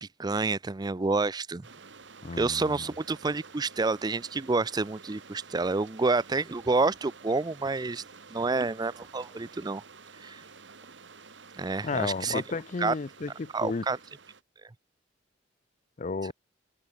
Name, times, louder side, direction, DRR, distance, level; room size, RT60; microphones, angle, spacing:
voice 1, 0.0-1.7 2.4-8.0 8.3-9.8 10.2-10.4 11.6-12.4 12.8-12.9 13.5-14.0, right 3 dB, 20° right, 0.5 m, -28 dB
sound 1, 1.6-14.4, right 5 dB, 75° right, 2.0 m, -51 dB
voice 2, 2.2-2.8 11.8-13.8 16.0-16.3, left 4 dB, 40° left, 0.5 m, -33 dB
head